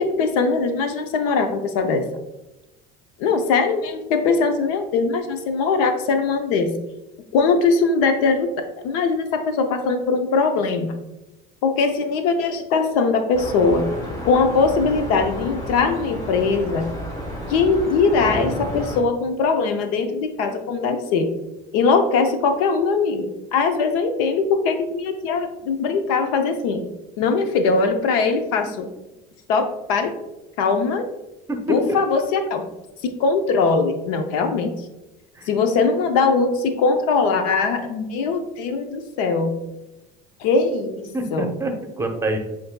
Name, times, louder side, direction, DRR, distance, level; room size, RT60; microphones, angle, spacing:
voice 1, 0.0-2.1 3.2-6.7 7.3-8.5 8.8-10.9 11.6-13.9 14.3-16.9 17.5-21.3 21.7-23.2 23.5-26.8 27.2-28.9 29.5-30.1 30.6-31.0 31.7-32.6 33.2-34.7 35.5-39.5 40.4-41.5, left 4 dB, 90° left, 7 dB, 0.6 m, -21 dB
sound 1, 13.3-19.0, left 1 dB, 20° left, 1.2 m, -31 dB
voice 2, 31.5-32.0 35.3-35.5 41.1-42.4, right 1 dB, 15° right, 4 dB, 0.7 m, -26 dB
7.6 x 2.6 x 2.2 m, 0.99 s
supercardioid pair, 105°, 19 cm